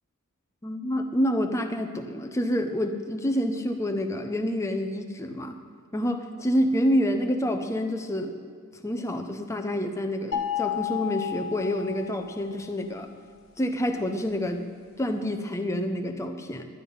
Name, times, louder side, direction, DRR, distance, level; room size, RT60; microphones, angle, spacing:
voice 1, 0.6-5.6 5.9-8.3 8.8-13.1 13.6-14.7 15.0-16.7, equal, 15° left, 5 dB, 0.7 m, -27 dB
sound 1, 10.3-12.6, left 10 dB, 65° left, 1.3 m, -31 dB
12.0 x 10.0 x 5.5 m, 2.1 s
head